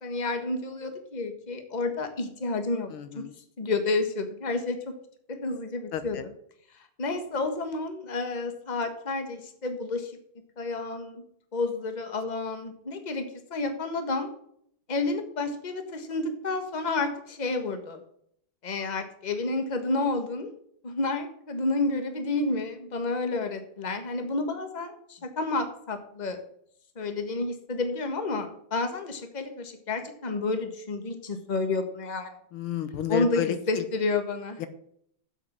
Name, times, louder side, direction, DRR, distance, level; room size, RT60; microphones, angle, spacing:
voice 1, 0.0-2.9 3.1-3.2 3.6-4.8 5.3-6.2 7.0-10.1 10.6-11.3 11.5-14.3 14.9-18.0 18.6-20.5 20.8-26.4 26.9-32.3 33.1-33.4 33.7-34.6, left 3 dB, 25° left, 6 dB, 1.4 m, -30 dB
voice 2, 2.9-3.3 5.9-6.3 32.5-33.9 34.6-34.7, left 10 dB, 90° left, 11 dB, 1.9 m, -31 dB
8.1 x 7.7 x 7.4 m, 0.68 s
omnidirectional pair, 2.3 m